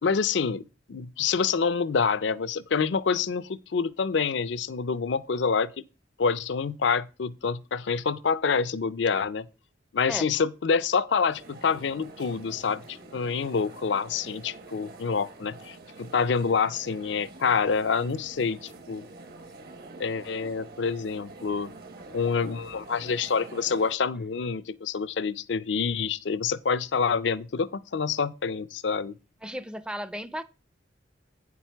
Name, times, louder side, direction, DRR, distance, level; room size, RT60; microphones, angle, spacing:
voice 1, 0.0-0.6 0.9-5.7 6.2-9.5 9.9-19.0 20.0-21.7 22.1-29.1, left 5 dB, 70° left, 0.5 m, -27 dB
sound 1, 11.3-23.9, right 3 dB, 55° right, 1.1 m, -46 dB
voice 2, 29.4-30.4, equal, 5° right, 0.5 m, -34 dB
8.8 x 6.1 x 4.6 m
head